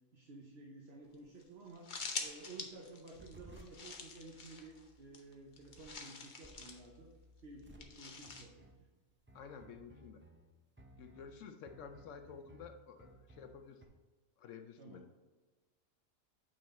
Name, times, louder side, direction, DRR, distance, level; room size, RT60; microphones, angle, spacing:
voice 1, 0.1-1.9 2.2-7.1 7.4-8.6 14.8-15.0, right 2 dB, 55° right, 0 dB, 1.0 m, -53 dB
sound 1, 1.1-1.2 1.4-1.5 1.7-6.9 7.8-8.5, left 4 dB, 40° left, 0.8 m, -46 dB
sound 2, 3.1-13.9, right 1 dB, 20° right, 0.3 m, -60 dB
voice 2, 9.3-10.2 11.0-13.8 14.4-15.1, left 6 dB, 70° left, 7 dB, 1.0 m, -51 dB
8.8 x 4.1 x 4.2 m, 1.3 s
omnidirectional pair, 1.4 m